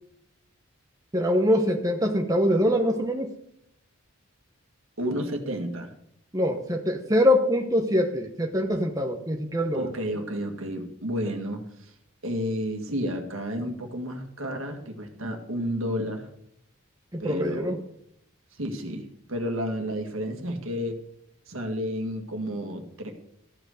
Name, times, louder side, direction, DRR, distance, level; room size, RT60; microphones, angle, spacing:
voice 1, 1.1-3.3 6.3-9.9 17.1-17.8, equal, 15° right, 3 dB, 0.9 m, -24 dB
voice 2, 5.0-5.9 9.7-11.9 12.2-16.3 17.2-17.8 18.6-21.0 21.5-23.1, equal, 65° right, 4 dB, 1.8 m, -31 dB
14.0 x 6.1 x 6.6 m, 0.73 s
head